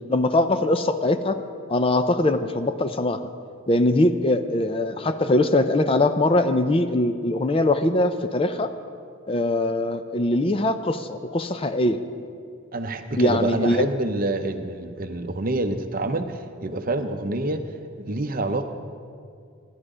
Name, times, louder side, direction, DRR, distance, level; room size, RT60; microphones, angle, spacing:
voice 1, 0.1-1.4 1.7-3.2 3.7-8.7 9.3-12.0 13.2-13.9, left 2 dB, 25° left, 9 dB, 0.4 m, -22 dB
voice 2, 12.7-17.7 18.0-18.6, right 2 dB, 40° right, 7 dB, 0.7 m, -27 dB
15.5 x 11.0 x 5.0 m, 2.3 s
head